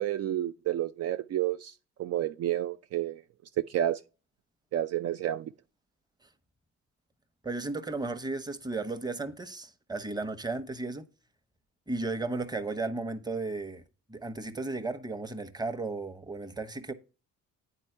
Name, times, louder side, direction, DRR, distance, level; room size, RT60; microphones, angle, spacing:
voice 1, 0.0-3.2 3.7-4.0 4.7-5.5, right 12 dB, 55° right, 0.4 m, -30 dB
voice 2, 7.4-11.0 11.9-13.8 14.1-16.9, right 3 dB, 15° right, 1.0 m, -34 dB
9.1 x 4.4 x 4.4 m
cardioid pair, 90°, 30 cm